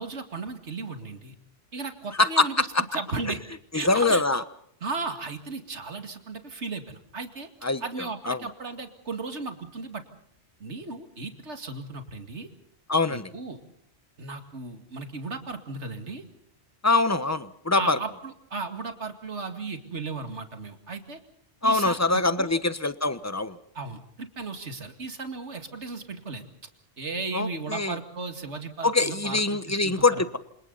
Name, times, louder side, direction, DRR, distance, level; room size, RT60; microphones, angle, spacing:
voice 1, 0.0-1.4 1.7-2.7 2.9-3.4 3.7-4.2 4.8-7.5 7.8-10.0 10.6-12.5 13.1-13.6 14.2-16.2 17.7-21.2 21.6-22.0 22.4-22.6 23.7-26.4 27.0-30.2, right 3 dB, 70° right, 6 dB, 2.6 m, -35 dB
voice 2, 2.2-2.8 3.7-4.4 7.6-8.5 12.9-13.3 16.8-18.0 21.6-23.6 27.3-28.0 28.8-30.4, left 3 dB, 15° left, 12 dB, 1.1 m, -24 dB
28.5 x 27.0 x 4.1 m, 0.67 s
omnidirectional pair, 1.2 m